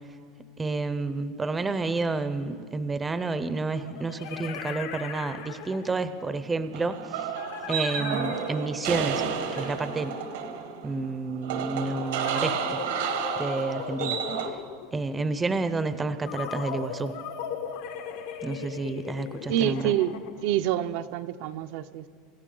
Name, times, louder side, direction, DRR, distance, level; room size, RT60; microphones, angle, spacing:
voice 1, 0.6-7.2 7.7-9.2 9.5-10.1 10.8-12.8 13.4-14.2 14.9-17.1 18.4-19.9, right 3 dB, 10° right, 12 dB, 0.5 m, -30 dB
sound 1, 2.3-2.4 3.7-6.1 7.4-10.8 12.0-15.1 16.3-20.5, left 7 dB, 70° left, 1.1 m, -38 dB
sound 2, 6.7-14.5, right 8 dB, 85° right, 1.3 m, -31 dB
voice 2, 19.5-20.1 20.4-22.1, right 12 dB, 60° right, 9 dB, 0.5 m, -27 dB
26.5 x 12.0 x 3.8 m, 2.2 s
supercardioid pair, 160°, 0 cm